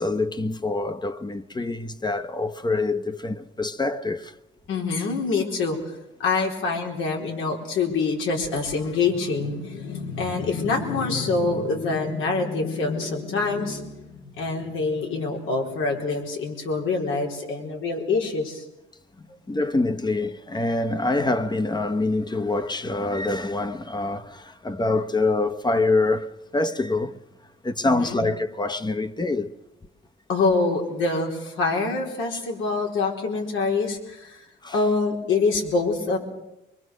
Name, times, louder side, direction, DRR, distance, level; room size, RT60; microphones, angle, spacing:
voice 1, 0.0-4.3 19.5-27.2 27.6-29.5 34.6-34.8, left 2 dB, 20° left, 1.2 m, -25 dB
voice 2, 4.7-5.9 6.2-18.6 19.2-19.3 27.8-28.2 30.3-34.4 34.7-36.2, left 4 dB, 80° left, 4.3 m, -25 dB
23.5 x 23.0 x 6.6 m
cardioid pair, 90°, 20 cm